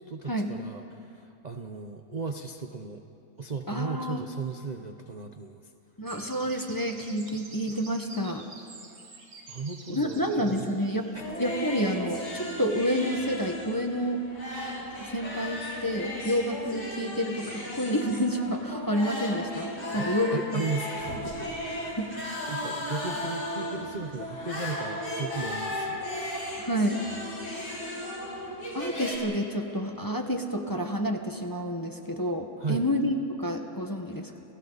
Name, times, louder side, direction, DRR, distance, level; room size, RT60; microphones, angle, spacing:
voice 1, 0.1-3.0 3.4-5.7 9.5-10.8 19.9-21.4 22.5-26.0 32.6-32.9 34.2-34.4, right 4 dB, 35° right, 5 dB, 0.8 m, -36 dB
voice 2, 3.7-4.2 6.0-8.4 9.9-11.1 11.4-14.2 15.1-20.6 21.8-22.1 26.6-27.0 28.7-34.3, equal, 15° left, 3 dB, 1.4 m, -29 dB
sound 1, 6.1-11.4, right 3 dB, 70° right, 2.6 m, -48 dB
sound 2, 11.1-29.2, left 1 dB, 70° left, 5.9 m, -38 dB
sound 3, 11.2-13.2 13.5-29.2, equal, 85° left, 7.8 m, -39 dB
30.0 x 29.5 x 4.1 m, 2.6 s
omnidirectional pair, 1.7 m